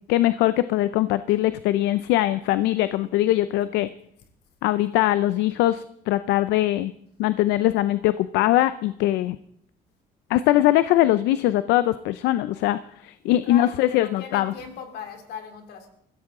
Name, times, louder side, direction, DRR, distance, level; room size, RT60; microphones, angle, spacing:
voice 1, 0.1-3.9 4.6-6.9 7.2-9.4 10.3-14.5, left 14 dB, 90° left, 14 dB, 0.5 m, -21 dB
voice 2, 13.2-15.9, left 7 dB, 75° left, 5 dB, 3.0 m, -39 dB
21.5 x 15.5 x 3.7 m, 0.72 s
cardioid pair, 110°, 17 cm